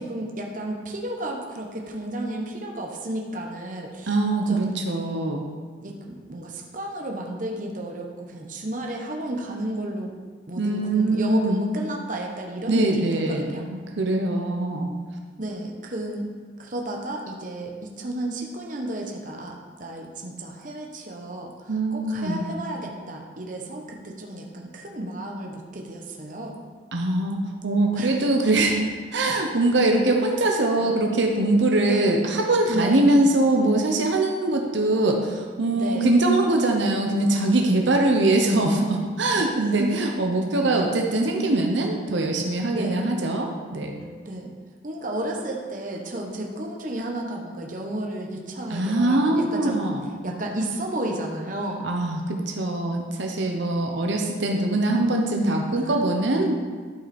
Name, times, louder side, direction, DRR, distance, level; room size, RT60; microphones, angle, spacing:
voice 1, 0.0-4.1 4.5-4.7 5.8-10.1 10.5-13.6 15.4-16.3 16.6-26.6 27.9-28.2 30.8-31.0 31.9-32.1 32.7-33.0 35.7-36.1 39.3-39.4 39.8-39.9 40.8-40.9 42.7-43.0 44.2-44.5 44.8-49.8 50.2-51.9 55.7-55.9, right 1 dB, 45° right, 0 dB, 1.0 m, -32 dB
voice 2, 4.1-5.5 10.6-11.6 12.7-14.9 21.7-22.4 26.9-28.8 29.1-44.0 48.7-50.0 51.8-56.5, right 2 dB, 70° right, 2 dB, 0.9 m, -22 dB
12.0 x 5.6 x 4.3 m, 1.5 s
head